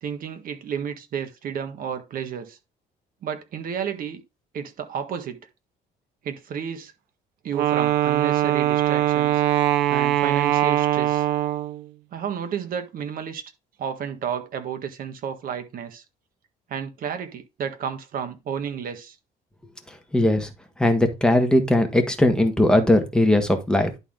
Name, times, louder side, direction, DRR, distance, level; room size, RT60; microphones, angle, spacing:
voice 1, 0.0-2.6 3.2-4.2 4.5-5.4 6.2-6.9 7.4-9.4 9.7-11.2 12.1-13.4 13.8-16.0 16.7-19.2, right 7 dB, 55° right, 1.5 m, -32 dB
Wind instrument woodwind instrument, 7.5-11.9, right 12 dB, 85° right, 0.6 m, -21 dB
voice 2, 20.1-20.5 20.8-23.9, left 1 dB, 5° left, 1.5 m, -19 dB
11.0 x 4.1 x 3.8 m
cardioid pair, 110°, 17 cm